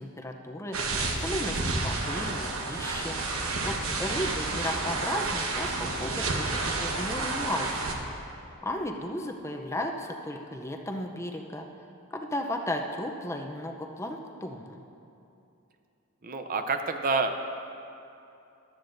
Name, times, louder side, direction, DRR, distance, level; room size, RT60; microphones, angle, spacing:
voice 1, 0.0-8.0 8.6-11.7 12.1-14.8, left 1 dB, 15° left, 3 dB, 0.5 m, -35 dB
sound 1, 0.7-7.9, right 3 dB, 70° right, 1.1 m, -30 dB
voice 2, 3.6-4.0 16.2-17.4, right 3 dB, 40° right, 7 dB, 0.5 m, -29 dB
14.5 x 12.0 x 2.6 m, 2.8 s
head